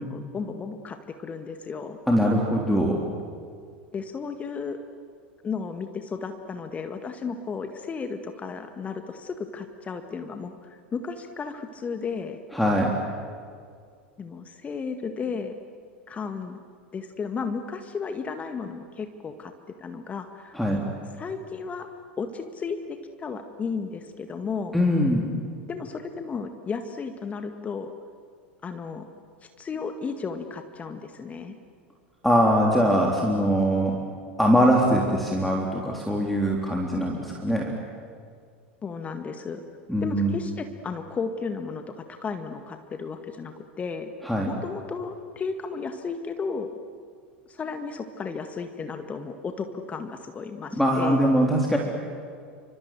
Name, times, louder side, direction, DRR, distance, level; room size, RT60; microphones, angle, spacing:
voice 1, 0.1-2.0 3.9-4.8 5.4-12.4 14.2-15.5 16.1-16.6 16.9-19.5 19.8-20.8 21.2-21.9 22.2-24.8 25.7-27.9 28.6-29.1 29.6-31.6 38.8-39.6 40.0-44.1 44.5-46.7 47.5-51.2 51.7-51.8, left 5 dB, 25° left, 7 dB, 1.8 m, -34 dB
voice 2, 2.1-3.0 12.5-13.0 20.5-20.8 24.7-25.3 32.2-34.0 34.4-37.7 39.9-40.4 44.2-44.5 50.8-51.8, equal, ahead, -1 dB, 3.6 m, -22 dB
29.5 x 26.0 x 7.7 m, 2.1 s
figure-of-eight pair, 85°, 6 cm